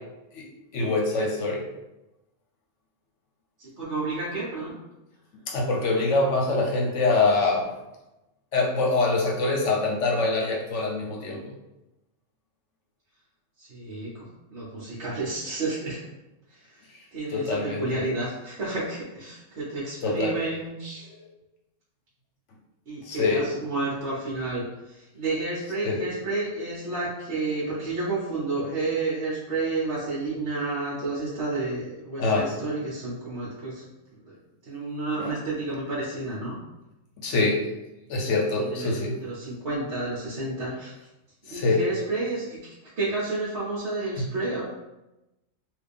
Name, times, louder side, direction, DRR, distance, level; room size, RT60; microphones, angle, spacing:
voice 1, 0.7-1.6 5.5-7.7 8.5-11.5 17.3-18.0 20.0-20.4 23.0-23.5 25.8-26.0 32.2-32.5 35.2-35.3 37.2-37.7 38.1-39.2 41.5-41.8 44.2-44.3, left 3 dB, 65° left, 0 dB, 0.9 m, -24 dB
voice 2, 3.6-4.7 13.6-14.2 14.5-16.0 16.5-16.8 17.1-21.1 22.9-34.4 34.6-36.6 38.6-41.1 41.4-44.6, right 2 dB, 55° right, -8 dB, 1.2 m, -31 dB
3.5 x 2.5 x 3.5 m, 0.95 s
omnidirectional pair, 1.5 m